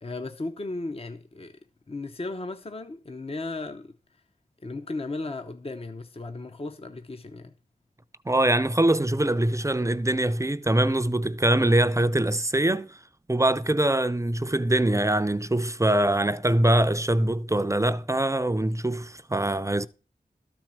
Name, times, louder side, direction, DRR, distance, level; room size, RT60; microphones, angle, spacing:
voice 1, 0.0-1.6 1.9-4.0 4.6-7.5, left 2 dB, 35° left, 0.7 m, -35 dB
voice 2, 8.3-13.0 13.3-19.9, right 1 dB, 20° right, 0.5 m, -23 dB
12.5 x 4.4 x 7.4 m
wide cardioid pair, 65°, 16 cm